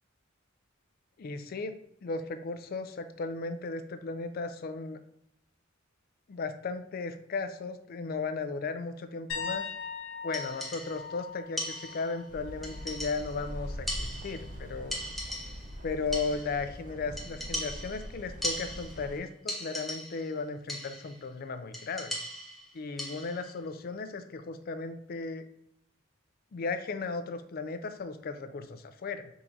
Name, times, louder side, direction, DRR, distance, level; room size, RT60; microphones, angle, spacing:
voice 1, 1.2-1.8 2.0-5.0 6.3-9.6 10.2-15.0 15.8-22.2 22.7-25.5 26.5-29.3, left 4 dB, 45° left, 9 dB, 0.4 m, -36 dB
sound 1, 9.3-13.0 13.4-13.7 16.6-16.7, left 5 dB, 75° left, 1.1 m, -40 dB
sound 2, 10.3-11.1 11.6-12.2 12.6-13.5 13.9-14.6 14.9-15.8 16.1-16.7 17.2-19.1 19.5-20.3 20.7-21.2 21.7-23.5, equal, ahead, 0.7 m, -38 dB
London - Whitechapel market, 12.3-19.2, equal, 40° right, 0.5 m, -42 dB
4.4 x 3.6 x 2.6 m, 0.74 s
head